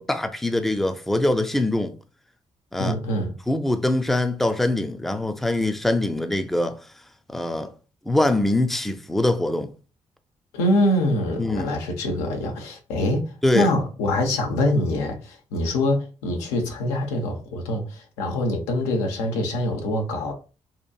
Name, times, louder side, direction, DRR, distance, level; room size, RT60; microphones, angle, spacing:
voice 1, 0.0-1.9 2.7-3.0 3.5-6.9 7.3-7.7 8.1-9.7 11.4-11.7 13.4-13.7, left 1 dB, ahead, 0.4 m, -23 dB
voice 2, 2.8-3.3 10.5-13.2 13.5-20.3, left 1 dB, 90° left, 0.6 m, -24 dB
2.8 x 2.4 x 2.3 m
hypercardioid pair, 45°, 13 cm